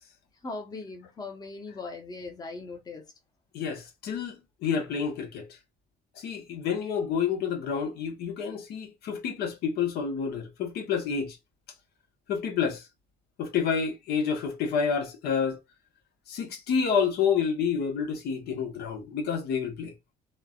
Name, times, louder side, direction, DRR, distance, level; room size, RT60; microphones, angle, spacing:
voice 1, 0.4-3.0, left 3 dB, 25° left, 0.8 m, -39 dB
voice 2, 3.5-4.4 4.6-5.5 6.2-11.4 12.3-12.8 13.4-15.6 16.3-19.9, left 6 dB, 70° left, 0.9 m, -29 dB
3.2 x 2.1 x 2.4 m
cardioid pair, 110°, 17 cm